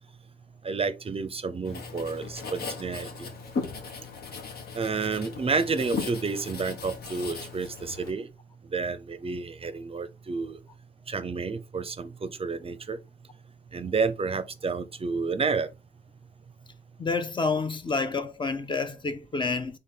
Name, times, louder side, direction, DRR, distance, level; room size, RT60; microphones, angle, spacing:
voice 1, 0.6-3.3 4.7-8.3 8.7-10.6 11.1-13.0 13.7-15.7, right 4 dB, 40° right, 0.5 m, -30 dB
Writing, 1.6-8.1, left 4 dB, 80° left, 1.0 m, -37 dB
voice 2, 17.0-19.8, left 4 dB, 30° left, 0.6 m, -29 dB
4.2 x 3.3 x 3.8 m
cardioid pair, 80°, 16 cm